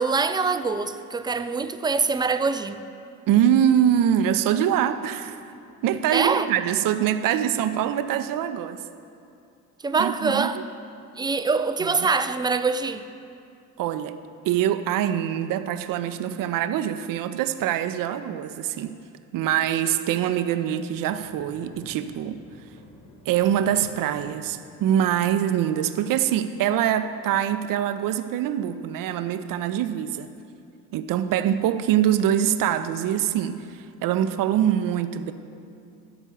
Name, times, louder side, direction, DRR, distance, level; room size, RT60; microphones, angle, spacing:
voice 1, 0.0-2.8 6.1-6.5 9.8-10.6 11.2-13.1, right 4 dB, 10° right, 0.4 m, -24 dB
voice 2, 3.3-5.5 5.8-8.8 10.0-10.6 13.8-14.2 14.4-19.0 19.3-22.4 23.3-30.3 30.9-33.7 34.0-35.3, right 10 dB, 50° right, 0.6 m, -24 dB
sound 1, 20.9-26.4, left 1 dB, 50° left, 3.0 m, -50 dB
13.0 x 5.4 x 6.9 m
figure-of-eight pair, 45°, 45 cm